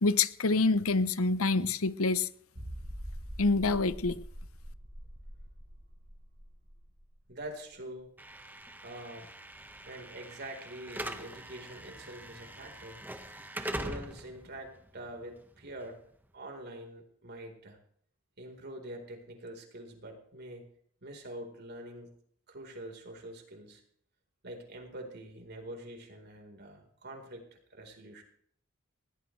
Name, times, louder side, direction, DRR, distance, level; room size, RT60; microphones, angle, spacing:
voice 1, 0.0-2.3 3.4-4.2, left 3 dB, 80° left, 0.9 m, -26 dB
sound 1, 2.6-8.0 8.3-8.4 8.9-9.0, equal, 70° right, 5.0 m, -44 dB
voice 2, 7.3-8.1 8.8-9.3 9.8-13.0 13.6-16.0 16.3-17.8 18.4-20.7 21.0-22.1 22.5-23.8 24.4-27.4 27.7-28.2, right 1 dB, 50° right, 4.3 m, -45 dB
Slam / Alarm, 8.2-16.3, right 1 dB, 10° right, 1.4 m, -43 dB
20.0 x 17.5 x 3.3 m
head